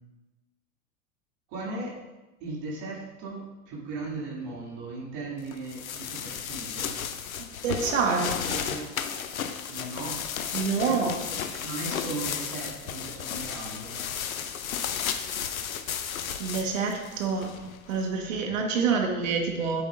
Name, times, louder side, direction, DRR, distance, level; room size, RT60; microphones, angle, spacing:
voice 1, 1.5-1.9 2.4-6.9 8.1-8.9 9.7-10.2 10.8-14.1 17.5-17.6 18.9-19.0, right 3 dB, 45° right, -4 dB, 2.9 m, -37 dB
sound 1, 5.5-18.0, left 8 dB, 80° left, 0.7 m, -34 dB
voice 2, 7.4-8.3 10.5-11.1 16.4-17.5 17.9-19.8, right 5 dB, 65° right, 2 dB, 1.6 m, -27 dB
9.2 x 7.7 x 2.6 m, 1.1 s
figure-of-eight pair, 90°, 41 cm